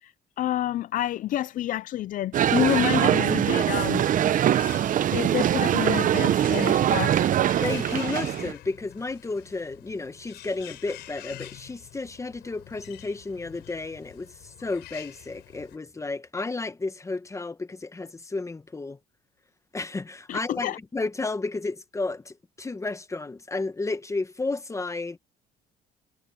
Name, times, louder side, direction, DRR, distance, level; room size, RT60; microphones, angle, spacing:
voice 1, 0.0-4.1 5.1-7.2 20.3-20.8, left 13 dB, 50° left, 0.4 m, -28 dB
sound 1, 2.3-8.5, right 11 dB, 50° right, 0.8 m, -23 dB
Bird, 2.8-15.8, left 15 dB, 80° left, 4.5 m, -46 dB
voice 2, 7.6-19.0 19.7-25.2, left 3 dB, 20° left, 1.1 m, -32 dB
cardioid pair, 110°, 17 cm